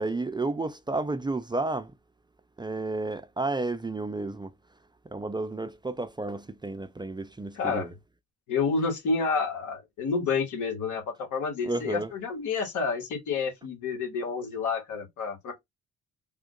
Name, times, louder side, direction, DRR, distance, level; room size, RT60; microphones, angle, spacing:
voice 1, 0.0-1.9 2.6-4.5 5.1-7.9 11.6-12.1, right 2 dB, 15° right, 0.4 m, -31 dB
voice 2, 7.5-7.9 8.5-15.6, left 5 dB, 85° left, 1.6 m, -29 dB
3.5 x 2.4 x 3.7 m
cardioid pair, 90°, 30 cm